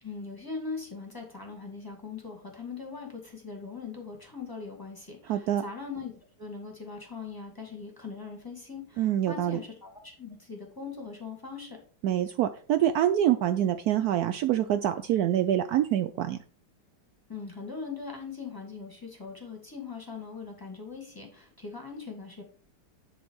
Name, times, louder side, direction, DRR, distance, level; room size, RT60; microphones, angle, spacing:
voice 1, 0.0-9.9 10.2-11.8 17.3-22.4, left 4 dB, 10° left, 0 dB, 2.1 m, -40 dB
voice 2, 5.3-5.6 9.0-9.6 12.0-16.4, right 11 dB, 85° right, 9 dB, 0.8 m, -25 dB
11.0 x 4.1 x 4.8 m, 0.43 s
omnidirectional pair, 2.2 m